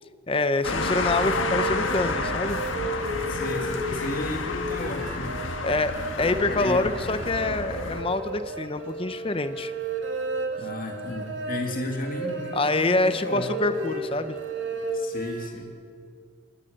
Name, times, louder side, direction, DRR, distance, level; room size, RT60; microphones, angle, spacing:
voice 1, 0.3-2.6 5.6-9.7 12.5-14.4, left 2 dB, 30° left, 11 dB, 0.6 m, -26 dB
sound 1, 0.6-8.0, left 3 dB, 85° left, 1.6 m, -30 dB
sound 2, 0.6-15.5, right 2 dB, 85° right, 2.5 m, -33 dB
voice 2, 3.3-5.4 6.2-6.9 10.6-13.5 14.9-15.7, left 1 dB, 45° left, 2 dB, 2.1 m, -34 dB
21.5 x 19.5 x 6.5 m, 2.3 s
head